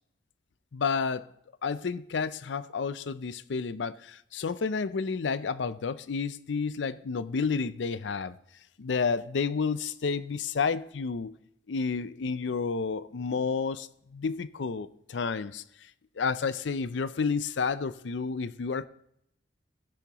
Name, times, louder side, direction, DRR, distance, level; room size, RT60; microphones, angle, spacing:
voice 1, 0.7-1.3 1.6-8.4 8.8-11.4 11.7-15.6 16.2-18.9, left 5 dB, 80° left, 0.5 m, -30 dB
15.0 x 10.5 x 3.0 m
head